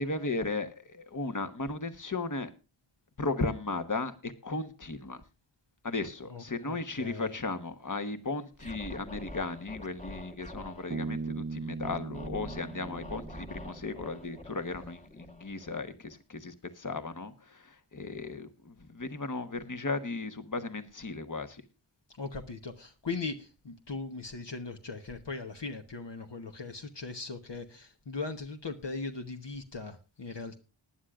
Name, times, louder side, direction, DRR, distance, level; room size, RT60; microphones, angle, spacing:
voice 1, 0.0-2.5 3.2-5.2 5.8-21.6, left 3 dB, 40° left, 1.3 m, -36 dB
voice 2, 6.3-7.3 22.2-30.6, left 4 dB, 60° left, 1.1 m, -39 dB
Scratching (performance technique), 8.5-10.9 11.8-16.1, left 1 dB, 15° left, 1.3 m, -46 dB
Bass guitar, 10.9-14.4, right 4 dB, 30° right, 0.6 m, -39 dB
19.5 x 10.0 x 2.4 m
wide cardioid pair, 50°, 48 cm